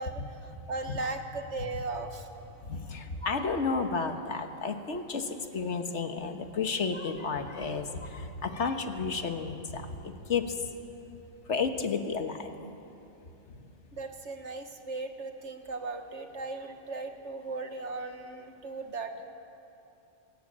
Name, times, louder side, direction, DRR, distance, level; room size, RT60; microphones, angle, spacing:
voice 1, 0.0-2.3 13.9-19.2, right 3 dB, 70° right, 6 dB, 1.8 m, -37 dB
voice 2, 2.6-10.7 11.5-12.5 13.5-13.7, left 5 dB, 65° left, 7 dB, 1.6 m, -32 dB
21.0 x 19.0 x 8.8 m, 2.9 s
omnidirectional pair, 1.3 m